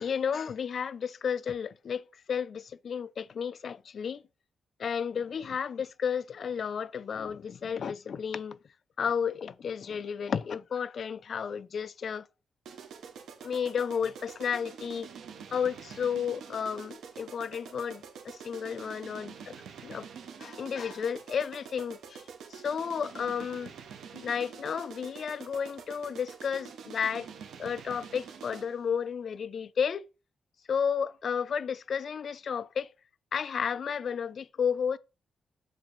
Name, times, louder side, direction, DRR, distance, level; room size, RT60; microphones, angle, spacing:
voice 1, 0.0-2.0 2.3-4.2 4.8-8.6 9.0-12.3 13.4-15.1 15.5-19.6 19.8-20.1 20.4-22.2 22.5-23.7 24.1-27.3 27.6-30.1 30.7-32.9 33.3-35.0, left 7 dB, 50° left, 0.4 m, -32 dB
sound 1, 12.7-28.8, right 7 dB, 85° right, 0.9 m, -46 dB
7.4 x 3.0 x 5.1 m
wide cardioid pair, 145°, 0 cm